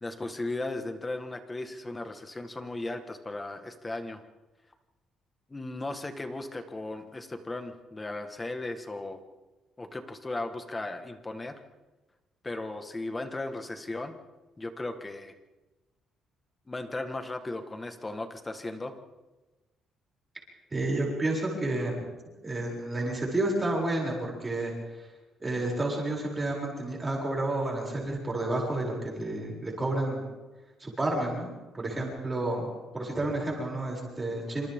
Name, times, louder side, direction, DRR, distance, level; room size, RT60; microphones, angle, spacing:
voice 1, 0.0-4.2 5.5-9.2 9.8-11.6 12.4-14.1 14.6-15.3 16.7-19.0, left 2 dB, 15° left, 7 dB, 1.6 m, -36 dB
voice 2, 20.7-22.0 22.4-25.1 25.4-30.2 30.8-31.5 31.7-34.7, right 2 dB, 15° right, -2 dB, 7.2 m, -30 dB
27.5 x 27.0 x 3.8 m, 1.2 s
cardioid pair, 155°, 0 cm